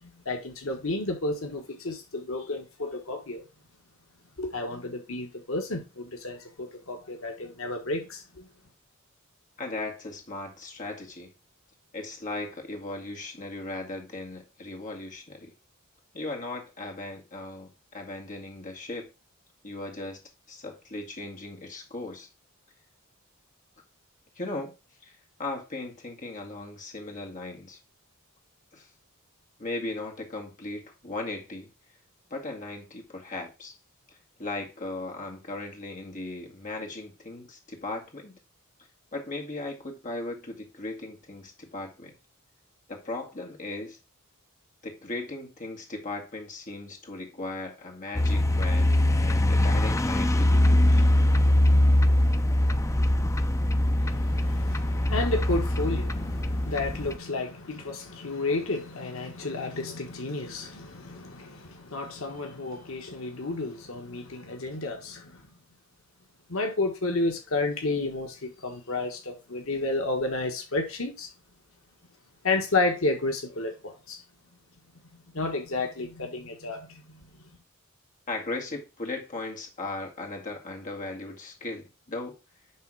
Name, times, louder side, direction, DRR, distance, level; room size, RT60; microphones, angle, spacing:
voice 1, 0.0-3.4 4.4-8.5 54.0-65.4 66.5-71.3 72.4-74.2 75.1-77.4, left 2 dB, 75° left, 1.6 m, -31 dB
voice 2, 9.6-11.3 11.9-15.5 16.1-19.1 19.6-20.2 20.5-22.3 24.4-24.7 25.0-27.8 28.7-28.9 29.6-31.7 32.3-33.7 34.1-38.4 39.1-42.1 42.9-44.0 44.8-51.0 78.3-82.4, left 2 dB, 40° left, 2.1 m, -37 dB
sound 1, 48.1-57.2, left 1 dB, 15° left, 0.5 m, -22 dB
10.5 x 3.7 x 4.8 m
head